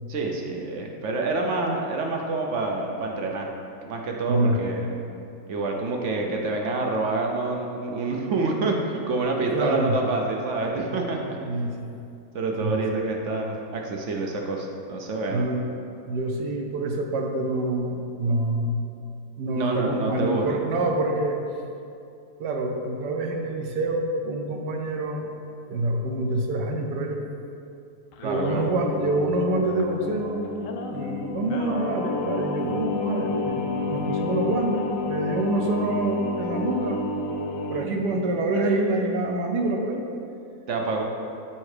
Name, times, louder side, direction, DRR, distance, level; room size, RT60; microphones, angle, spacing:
voice 1, 0.1-3.5 3.8-5.0 5.5-11.4 12.3-15.5 19.5-20.6 28.2-28.7 40.7-41.0, right 3 dB, 60° right, 1 dB, 0.8 m, -27 dB
voice 2, 4.3-4.6 9.5-10.0 11.4-12.0 12.6-12.8 15.3-15.6 16.1-18.9 19.4-21.4 22.4-25.3 25.7-27.2 28.2-30.4 30.9-37.0 37.7-40.1, right 2 dB, 75° right, 2 dB, 1.3 m, -26 dB
Singing, 28.1-37.9, left 4 dB, 70° left, 0.8 m, -30 dB
7.2 x 4.8 x 4.8 m, 2.6 s
omnidirectional pair, 1.8 m